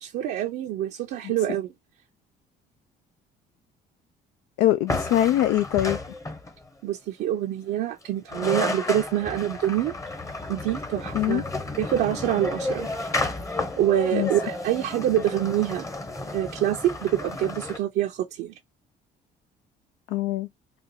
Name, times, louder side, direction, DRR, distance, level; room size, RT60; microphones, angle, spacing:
voice 1, 0.0-1.7 6.8-9.9 10.5-11.4 11.8-12.9 13.8-15.9 16.3-18.5, right 12 dB, 75° right, 0.6 m, -26 dB
voice 2, 4.6-6.0 11.1-11.4 14.1-14.3 20.1-20.5, left 13 dB, 85° left, 0.4 m, -22 dB
sound 1, 4.9-6.6 8.0-8.1 8.3-17.8, left 2 dB, 20° left, 0.8 m, -32 dB
3.9 x 2.3 x 2.7 m
cardioid pair, 110°, 17 cm